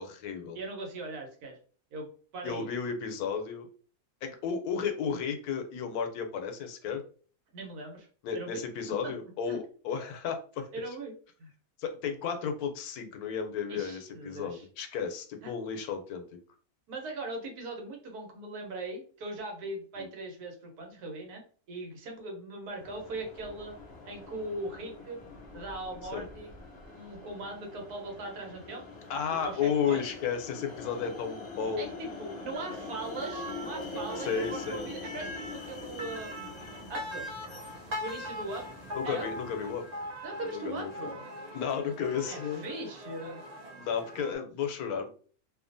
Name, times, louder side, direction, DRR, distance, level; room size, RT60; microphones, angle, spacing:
voice 1, 0.0-0.6 2.4-3.7 4.2-7.0 8.2-10.7 11.8-16.2 20.0-20.1 26.1-26.3 29.1-31.9 34.2-34.8 38.9-39.8 40.5-41.1 41.5-42.7 43.8-45.1, left 7 dB, 80° left, 5 dB, 1.0 m, -33 dB
voice 2, 0.5-1.6 1.9-2.1 2.3-2.7 7.5-8.1 8.3-8.6 9.0-9.1 9.5-9.6 10.7-11.1 11.4-11.5 13.7-14.6 15.4-15.5 16.9-21.4 21.7-23.7 24.1-25.2 25.5-26.5 26.9-28.8 29.4-30.0 31.8-36.5 36.9-37.3 38.0-38.7 39.0-39.3 40.2-41.2 42.3-43.4, right 2 dB, 90° right, 2 dB, 1.3 m, -40 dB
sound 1, 22.7-40.2, left 4 dB, 40° left, 0.7 m, -44 dB
sound 2, 32.5-44.3, equal, 55° right, 0.4 m, -42 dB
2.7 x 2.4 x 2.5 m, 0.42 s
omnidirectional pair, 1.6 m